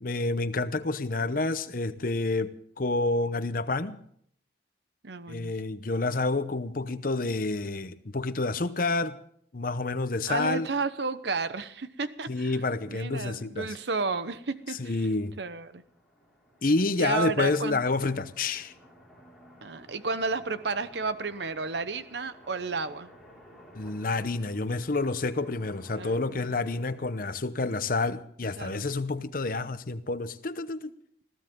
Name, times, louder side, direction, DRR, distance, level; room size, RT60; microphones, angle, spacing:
voice 1, 0.0-4.0 5.3-9.2 9.5-10.7 12.3-13.7 14.8-15.3 16.6-18.7 23.7-30.9, left 3 dB, 50° left, 0.9 m, -29 dB
voice 2, 5.0-5.5 10.3-15.1 15.4-15.8 17.0-17.9 19.6-23.1 25.9-26.7 28.6-28.8, right 4 dB, 70° right, 0.9 m, -32 dB
sound 1, 12.1-12.2 12.5-12.6 12.8-27.2, equal, ahead, 5.0 m, -55 dB
21.0 x 15.5 x 3.8 m
head